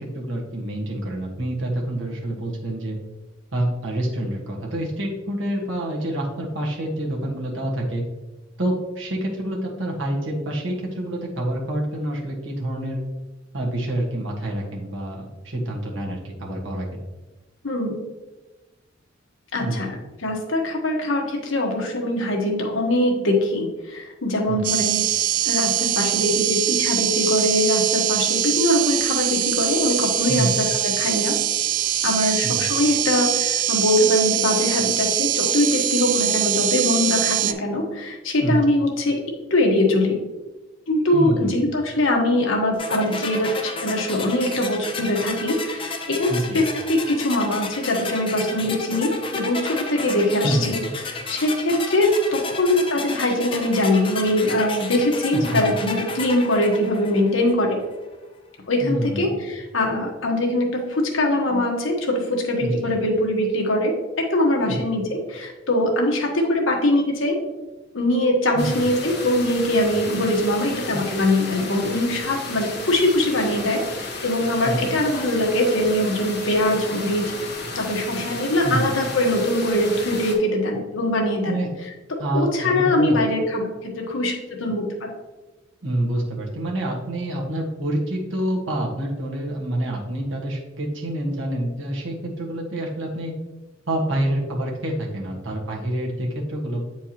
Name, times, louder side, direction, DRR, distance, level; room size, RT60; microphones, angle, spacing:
voice 1, 0.0-3.0 3.5-8.0 8.6-13.0 13.5-16.9 19.6-19.8 24.5-24.6 30.3-30.5 32.4-32.6 38.4-38.6 41.1-41.5 46.3-46.6 50.4-50.7 55.3-55.7 58.8-59.3 62.6-62.9 64.7-64.8 68.5-68.8 74.6-74.9 78.6-78.9 81.4-81.7 82.2-83.2 85.8-93.3 93.9-96.8, right 1 dB, 70° right, -1 dB, 1.5 m, -27 dB
voice 2, 17.6-18.0 19.5-20.0 20.2-25.1 25.4-31.4 32.0-39.2 39.5-40.2 40.9-50.8 51.0-57.8 58.7-63.9 64.3-67.3 67.9-77.5 77.7-81.5 82.3-84.3 84.6-84.9, left 1 dB, 75° left, 1 dB, 1.3 m, -22 dB
sound 1, 24.6-37.5, right 12 dB, 40° right, 0.3 m, -23 dB
sound 2, 42.8-57.7, left 3 dB, 25° left, 0.7 m, -32 dB
sound 3, 68.6-80.3, left 3 dB, 60° left, 1.5 m, -33 dB
8.5 x 4.6 x 2.9 m, 1.1 s
head